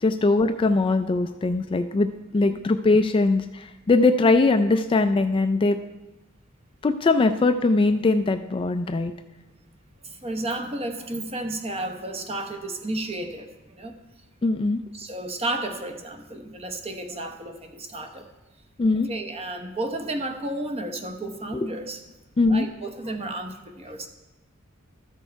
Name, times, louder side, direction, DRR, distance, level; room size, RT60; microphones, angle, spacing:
voice 1, 0.0-5.8 6.8-9.1 14.4-14.8 18.8-19.1 21.5-21.7 22.4-22.7, left 3 dB, 25° left, 9 dB, 0.3 m, -21 dB
voice 2, 10.0-14.0 14.9-18.3 19.1-22.0 22.5-24.1, right 2 dB, 30° right, 6 dB, 0.9 m, -32 dB
13.5 x 6.4 x 4.5 m, 1.1 s
head